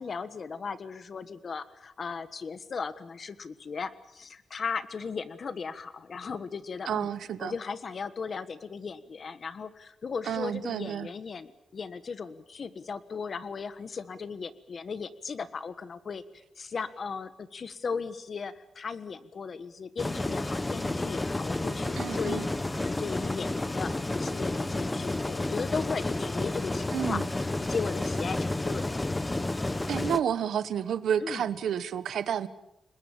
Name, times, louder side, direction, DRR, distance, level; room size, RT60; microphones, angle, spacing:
voice 1, 0.0-7.1 7.4-16.2 16.6-22.4 22.7-29.0 31.2-31.5, left 5 dB, 40° left, 13 dB, 1.4 m, -37 dB
voice 2, 6.9-7.5 10.2-11.1 22.0-22.5 26.9-27.3 29.9-32.5, right 8 dB, 80° right, 14 dB, 1.2 m, -30 dB
sound 1, 20.0-30.2, left 2 dB, 15° left, 1.0 m, -31 dB
30.0 x 20.5 x 7.3 m, 0.85 s
wide cardioid pair, 160°, 0 cm